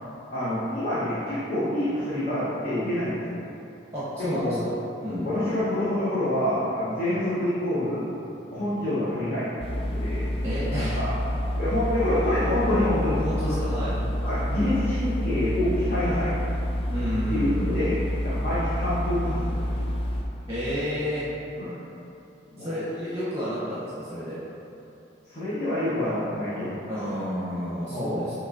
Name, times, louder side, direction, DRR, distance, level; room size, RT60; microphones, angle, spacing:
voice 1, 0.3-3.4 4.2-4.6 5.0-8.2 8.5-10.3 10.7-11.1 11.5-13.2 14.2-16.3 17.3-18.0 18.2-19.7 21.6-21.7 22.5-22.7 25.3-26.8 27.9-28.3, left 1 dB, 45° left, -12 dB, 0.9 m, -27 dB
voice 2, 3.9-4.7 5.0-5.4 10.4-11.0 13.2-14.0 16.9-17.8 20.5-21.3 22.6-24.4 26.9-28.3, equal, 15° right, -11 dB, 0.7 m, -31 dB
sound 1, 9.6-20.2, equal, 30° left, 0.4 m, -28 dB
6.5 x 2.9 x 2.5 m, 2.8 s
head